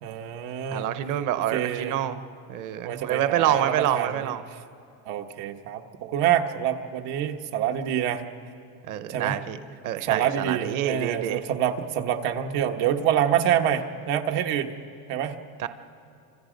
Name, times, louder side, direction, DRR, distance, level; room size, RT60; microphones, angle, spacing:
voice 1, 0.0-0.9 1.5-2.2 2.8-4.4 5.0-8.2 9.1-9.4 10.1-14.7 15.1-15.4, right 10 dB, 90° right, 5 dB, 1.5 m, -26 dB
voice 2, 0.7-2.2 2.5-4.4 8.9-9.6 9.8-11.4 15.6-15.7, right 11 dB, 50° right, 11 dB, 0.8 m, -27 dB
29.5 x 26.0 x 5.2 m, 2.6 s
cardioid pair, 175°, 41 cm